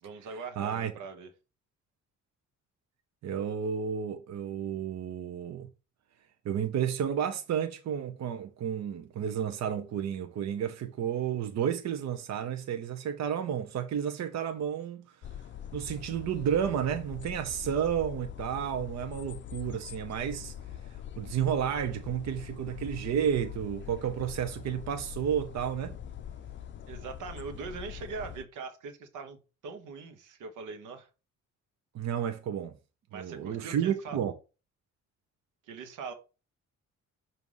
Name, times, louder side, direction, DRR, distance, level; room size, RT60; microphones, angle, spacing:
voice 1, 0.0-1.3 26.9-31.1 33.1-34.2 35.7-36.1, right 5 dB, 85° right, 1.0 m, -41 dB
voice 2, 0.6-0.9 3.2-5.7 6.4-15.0 15.7-20.5 21.2-26.0 31.9-32.7 33.1-34.3, right 8 dB, 60° right, 0.8 m, -31 dB
sound 1, 15.2-28.4, left 10 dB, 40° left, 0.5 m, -43 dB
6.1 x 2.8 x 5.5 m
cardioid pair, 90°, 30 cm